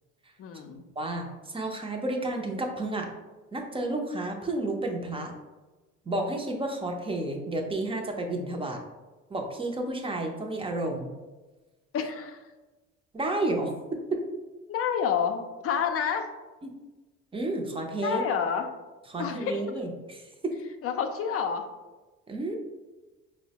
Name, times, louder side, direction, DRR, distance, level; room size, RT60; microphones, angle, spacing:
voice 1, 0.4-0.8 11.9-12.4 14.7-16.3 18.0-18.7 19.2-19.6 20.8-21.6, left 7 dB, 45° left, 6 dB, 0.4 m, -29 dB
voice 2, 1.0-3.1 3.5-5.3 6.1-8.8 9.3-11.1 13.1-13.7 14.1-14.2 16.6-16.7 17.3-18.2 19.1-20.5 22.3-22.6, right 2 dB, 15° right, 2 dB, 0.5 m, -31 dB
4.3 x 2.1 x 2.8 m, 1.2 s
cardioid pair, 100°, 31 cm